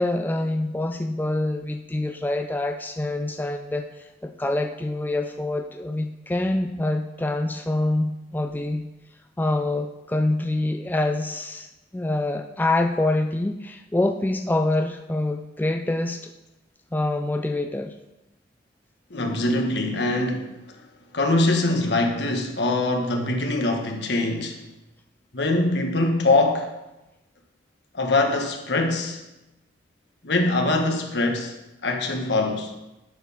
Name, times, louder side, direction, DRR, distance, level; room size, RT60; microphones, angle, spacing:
voice 1, 0.0-8.9 9.4-16.3 16.9-17.9, left 2 dB, 10° left, 5 dB, 0.3 m, -26 dB
voice 2, 19.1-20.5 21.1-24.6 25.3-26.7 27.9-29.2 30.2-31.5 31.8-32.7, left 2 dB, 70° left, 3 dB, 1.3 m, -23 dB
10.5 x 4.6 x 5.7 m, 0.99 s
head